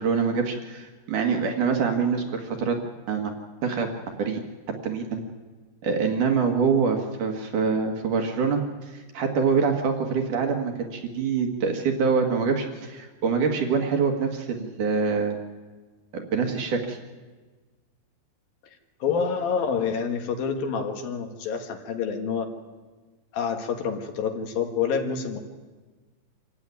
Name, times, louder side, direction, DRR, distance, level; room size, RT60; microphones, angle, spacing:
voice 1, 0.0-2.8 3.1-3.3 3.6-4.4 4.8-5.2 5.8-8.6 8.9-15.4 16.1-17.0, right 5 dB, 60° right, 3 dB, 2.9 m, -25 dB
voice 2, 19.0-22.5 23.3-25.4, left 6 dB, 65° left, 4 dB, 3.4 m, -27 dB
26.0 x 15.5 x 9.6 m, 1.3 s
omnidirectional pair, 4.6 m